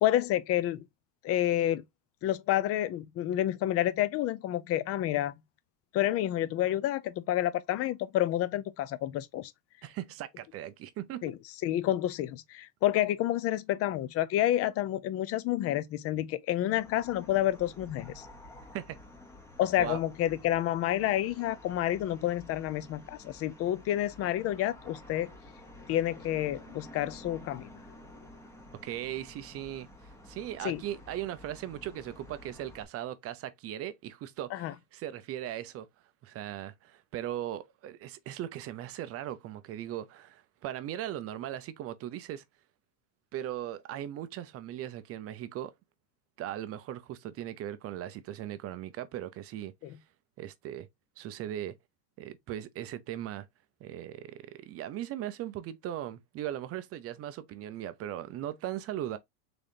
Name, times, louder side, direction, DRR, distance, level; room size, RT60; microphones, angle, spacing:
voice 1, 0.0-0.9 1.2-1.8 2.2-5.3 5.9-9.5 11.2-11.3 11.6-18.3 19.6-25.3 25.9-27.7 30.6-30.8 34.5-34.7 49.8-49.9, left 13 dB, 30° left, 0.5 m, -29 dB
voice 2, 9.8-11.3 18.7-19.0 19.8-20.0 28.8-29.9 30.3-35.9 36.2-42.4 43.3-45.7 46.4-49.7 50.4-50.9 51.2-51.8 52.2-53.5 53.8-59.2, right 12 dB, 30° right, 0.5 m, -38 dB
sound 1, 16.7-32.8, left 1 dB, 5° left, 1.0 m, -51 dB
3.9 x 3.4 x 2.8 m
supercardioid pair, 120°, 46 cm